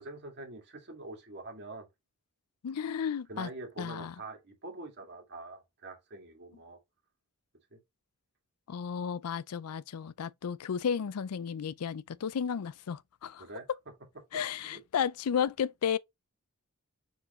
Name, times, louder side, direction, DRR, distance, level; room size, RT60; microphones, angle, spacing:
voice 1, 0.0-1.9 3.3-6.8 7.7-7.8 13.4-13.7 14.3-14.8, right 2 dB, 50° right, 2.3 m, -45 dB
voice 2, 2.6-3.5 3.8-4.1 8.7-13.4 14.3-16.0, left 7 dB, 85° left, 0.4 m, -33 dB
6.9 x 4.6 x 3.1 m
head